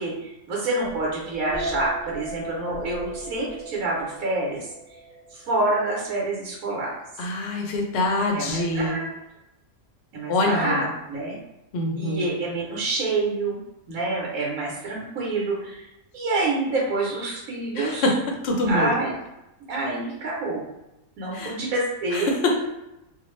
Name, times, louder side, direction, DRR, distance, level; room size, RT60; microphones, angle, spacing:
voice 1, 0.0-4.7 5.3-6.9 8.2-9.1 10.1-11.4 11.9-13.6 13.9-15.9 16.1-18.1 18.7-19.1 19.7-20.6 21.2-22.3, right 2 dB, 80° right, -4 dB, 1.2 m, -27 dB
sound 1, 0.8-5.7, right 2 dB, 50° right, 0.9 m, -36 dB
voice 2, 7.2-9.0 10.3-10.9 11.7-12.3 17.8-18.2 18.4-18.9 21.3-21.6 22.1-22.6, left 2 dB, 60° left, 1 dB, 0.7 m, -24 dB
2.5 x 2.4 x 3.1 m, 0.91 s
omnidirectional pair, 1.5 m